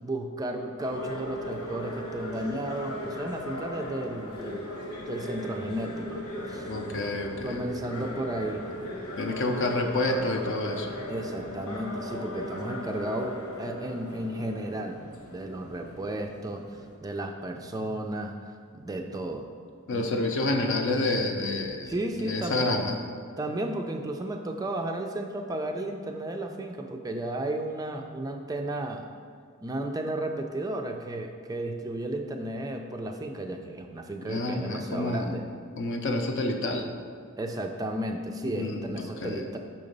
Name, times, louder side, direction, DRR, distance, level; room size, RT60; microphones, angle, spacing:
voice 1, 0.0-4.7 5.1-6.2 6.5-6.7 7.4-8.6 11.1-15.0 15.3-16.6 17.0-18.4 18.7-19.5 19.9-20.1 21.9-22.9 23.4-29.1 29.6-35.5 37.4-39.6, right 1 dB, 15° right, 4 dB, 0.3 m, -33 dB
sound 1, 0.8-17.0, left 1 dB, 85° left, 1.2 m, -38 dB
voice 2, 6.7-7.6 9.2-10.9 19.9-21.9 22.2-23.0 34.3-35.3 35.8-36.9 38.5-39.4, left 2 dB, 60° left, 4 dB, 0.6 m, -28 dB
5.9 x 3.9 x 5.2 m, 2.3 s
head